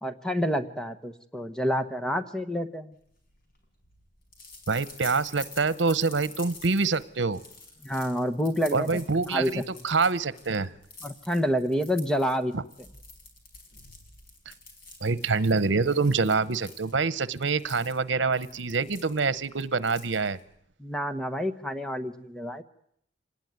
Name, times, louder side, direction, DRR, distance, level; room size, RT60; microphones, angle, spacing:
voice 1, 0.0-2.9 7.8-8.9 9.3-9.6 11.0-12.5 20.8-22.6, equal, 5° left, 8 dB, 1.1 m, -28 dB
sound 1, 3.1-20.6, left 3 dB, 55° left, 5.3 m, -48 dB
voice 2, 4.7-7.4 8.7-10.7 12.5-12.6 14.5-14.6 15.0-20.4, right 4 dB, 85° right, 17 dB, 1.0 m, -26 dB
25.5 x 19.5 x 9.5 m, 0.72 s
head